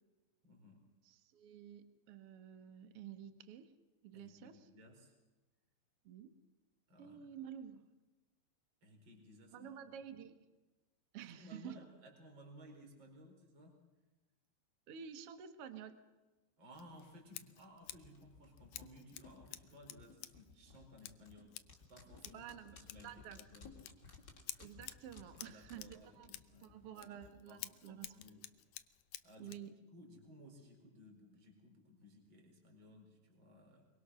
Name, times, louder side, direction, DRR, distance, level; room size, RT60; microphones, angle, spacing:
voice 1, 0.4-0.9 4.1-5.1 6.9-7.3 8.8-9.7 11.2-13.8 16.6-21.6 21.9-23.7 25.4-27.1 27.5-28.4 29.2-29.5 29.9-33.9, left 1 dB, 25° right, 2 dB, 5.0 m, -59 dB
voice 2, 1.0-3.7 4.0-4.5 6.0-6.3 7.0-7.8 9.5-10.4 11.1-11.8 14.9-16.0 22.3-23.4 24.6-26.3 26.6-28.1 29.4-29.7, right 9 dB, 65° right, 9 dB, 1.4 m, -51 dB
Scissors, 16.7-29.7, left 15 dB, 85° left, 2.0 m, -54 dB
sound 1, 17.9-27.3 27.6-27.7, left 4 dB, 25° left, 3.5 m, -59 dB
24.5 x 23.5 x 6.4 m, 1.1 s
omnidirectional pair, 5.3 m